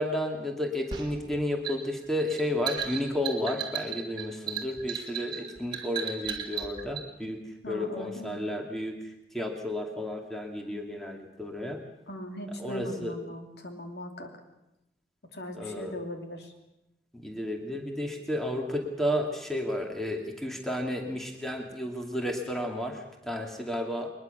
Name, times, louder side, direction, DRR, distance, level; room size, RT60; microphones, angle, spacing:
voice 1, 0.0-7.4 7.7-11.8 12.6-13.2 15.5-16.0 17.1-24.1, left 1 dB, ahead, 2 dB, 2.4 m, -32 dB
sound 1, 0.9-7.1, right 7 dB, 25° right, 2.2 m, -35 dB
voice 2, 7.6-8.4 12.1-14.3 15.3-16.5, left 1 dB, 65° left, 4 dB, 2.8 m, -39 dB
22.0 x 21.0 x 6.8 m, 0.88 s
head